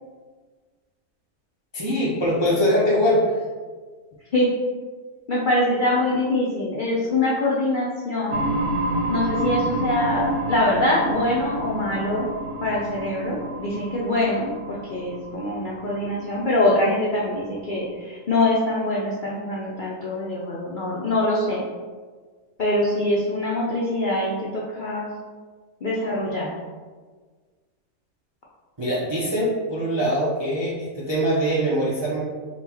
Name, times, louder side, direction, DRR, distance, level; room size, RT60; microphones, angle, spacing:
voice 1, 1.7-3.4 28.8-32.2, equal, 45° right, -7 dB, 0.3 m, -22 dB
voice 2, 5.3-8.5 9.1-12.3 12.6-21.6 22.6-25.1 25.8-26.5, left 1 dB, 65° left, -5 dB, 0.4 m, -24 dB
sound 1, 8.3-17.9, right 1 dB, 85° right, 1.1 m, -30 dB
4.1 x 2.3 x 4.2 m, 1.5 s
omnidirectional pair, 1.6 m